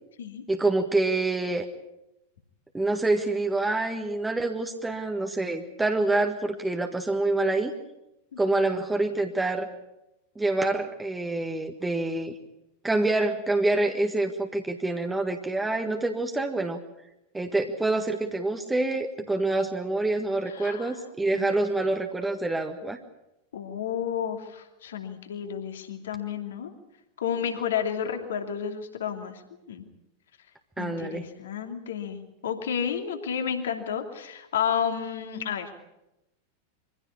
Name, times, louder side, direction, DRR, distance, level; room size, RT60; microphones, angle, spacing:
voice 1, 0.5-1.7 2.7-7.7 8.4-9.7 10.3-12.4 12.8-16.8 17.3-23.0 30.8-31.3, right 2 dB, 10° right, 5 dB, 1.6 m, -26 dB
voice 2, 20.4-21.0 21.3-21.5 23.5-26.7 27.2-29.4 29.7-29.8 30.8-35.9, left 8 dB, 60° left, 5 dB, 2.7 m, -31 dB
24.0 x 16.0 x 8.5 m, 0.92 s
figure-of-eight pair, 90°, 0 cm